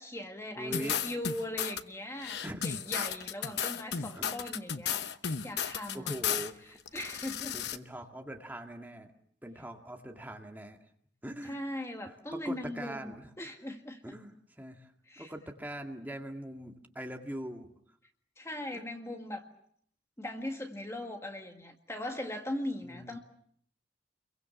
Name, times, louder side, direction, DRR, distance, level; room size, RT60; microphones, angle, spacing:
voice 1, 0.0-2.4 2.6-6.2 6.9-7.6 11.4-14.1 15.1-15.3 18.4-19.5 20.2-23.2, left 1 dB, 15° left, 4 dB, 1.8 m, -39 dB
voice 2, 0.6-1.0 2.4-2.6 4.1-4.4 5.9-6.8 7.5-9.1 9.4-10.9 11.2-11.6 12.1-13.3 14.0-17.7 18.7-18.9 22.8-23.2, right 1 dB, 10° right, 3 dB, 2.1 m, -42 dB
sound 1, 0.7-1.8 2.2-6.5 6.9-7.8, left 8 dB, 65° left, 1.0 m, -34 dB
29.5 x 23.0 x 7.1 m, 0.66 s
head